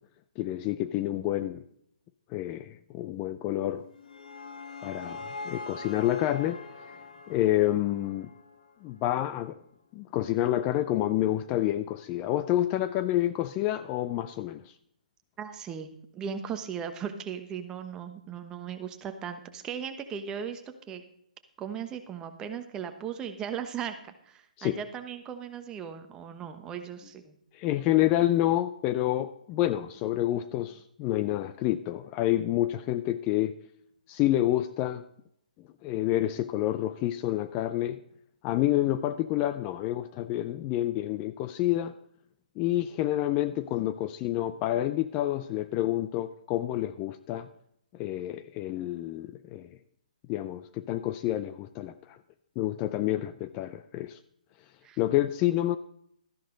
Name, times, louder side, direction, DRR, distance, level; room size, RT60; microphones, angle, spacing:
voice 1, 0.4-1.6 2.3-3.8 4.8-6.9 7.3-8.3 8.8-9.6 9.9-14.7 24.6-24.8 27.5-33.5 34.1-35.0 35.8-38.0 38.4-41.9 42.6-47.5 47.9-49.7 50.3-52.2 52.6-54.2 55.0-55.8, left 14 dB, 25° left, 12 dB, 0.4 m, -28 dB
sound 1, 3.7-8.9, left 3 dB, 65° left, 1.7 m, -43 dB
voice 2, 15.4-20.6 20.9-21.0 21.6-27.3 54.8-55.0, right 7 dB, 15° right, 7 dB, 1.1 m, -37 dB
13.0 x 11.0 x 3.9 m, 0.71 s
hypercardioid pair, 145°, 4 cm